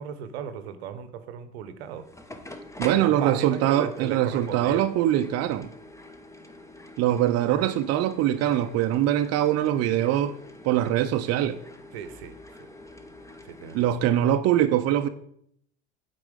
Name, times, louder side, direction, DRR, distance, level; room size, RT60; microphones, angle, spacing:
voice 1, 0.0-2.1 2.8-4.9 11.9-12.4 13.4-14.1, right 7 dB, 85° right, 0.8 m, -35 dB
sound 1, 1.8-13.9, left 2 dB, 10° left, 1.0 m, -46 dB
voice 2, 2.8-5.7 7.0-10.4 10.6-11.6 13.7-15.1, right 12 dB, 55° right, 0.6 m, -23 dB
8.1 x 4.2 x 5.0 m
hypercardioid pair, 75°, 31 cm